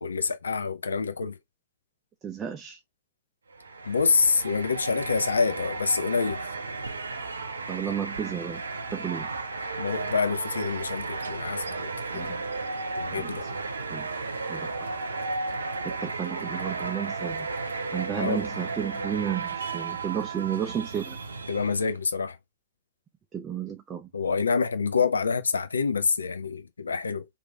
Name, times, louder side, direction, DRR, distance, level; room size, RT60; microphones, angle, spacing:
voice 1, 0.0-1.4 3.9-6.4 9.8-12.4 13.0-13.5 18.1-18.4 21.5-22.4 24.1-27.3, left 5 dB, 70° left, 0.4 m, -27 dB
voice 2, 2.2-2.8 7.7-8.6 8.9-9.3 12.1-12.4 13.1-13.5 13.9-14.1 14.5-14.7 15.8-17.5 17.9-21.2 23.3-24.1, right 8 dB, 20° right, 0.4 m, -32 dB
sound 1, 3.5-22.0, right 3 dB, 75° right, 0.5 m, -34 dB
2.9 x 2.6 x 2.2 m
figure-of-eight pair, 100°, 0 cm